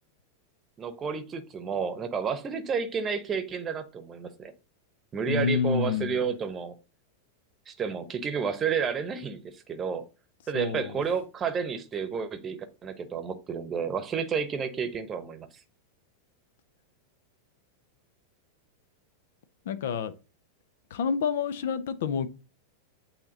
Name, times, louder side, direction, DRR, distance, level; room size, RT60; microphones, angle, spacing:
voice 1, 0.8-4.5 5.1-6.7 7.7-10.0 10.5-15.5, right 6 dB, 25° right, 0.9 m, -31 dB
voice 2, 5.3-6.2 10.5-11.0 19.7-20.1 20.9-22.3, left 6 dB, 60° left, 0.6 m, -28 dB
8.5 x 2.9 x 3.9 m
figure-of-eight pair, 90°, 0 cm